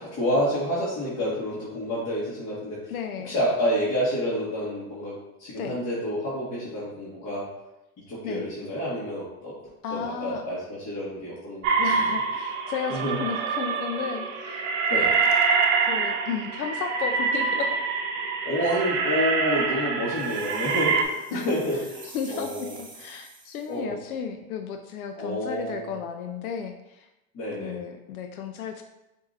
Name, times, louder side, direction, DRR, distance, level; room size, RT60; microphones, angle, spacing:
voice 1, 0.0-2.9 3.2-7.5 8.1-9.5 9.9-12.1 12.9-13.1 14.9-15.1 18.4-22.7 23.7-23.9 25.2-25.9 27.3-27.8, equal, 35° left, -9 dB, 1.6 m, -29 dB
voice 2, 2.9-3.3 5.5-5.7 8.2-8.4 9.8-10.4 11.8-15.3 15.8-17.8 18.6-18.7 21.3-21.5 22.0-27.1 27.6-28.8, left 7 dB, 85° left, 5 dB, 0.5 m, -34 dB
sound 1, 11.6-21.0, right 5 dB, 60° right, 0.8 m, -25 dB
sound 2, 20.1-23.8, right 4 dB, 10° right, 0.5 m, -47 dB
6.9 x 2.7 x 2.6 m, 0.95 s
hypercardioid pair, 115°, 42 cm